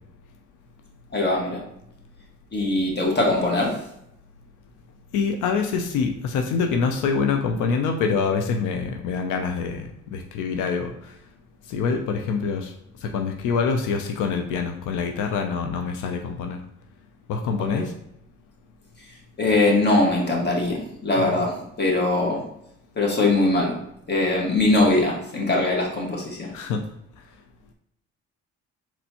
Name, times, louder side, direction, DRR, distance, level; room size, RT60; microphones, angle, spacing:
voice 1, 1.1-1.6 2.5-3.7 17.7-17.8 19.4-21.5 21.8-22.4 23.0-23.8 24.1-26.5, left 2 dB, 35° left, -2 dB, 1.6 m, -21 dB
voice 2, 5.1-11.1 11.7-12.7 13.0-16.6 17.3-17.9 21.2-21.3 26.5-26.9, left 5 dB, 90° left, 5 dB, 0.5 m, -25 dB
4.4 x 4.3 x 2.8 m, 0.76 s
cardioid pair, 90°, 30 cm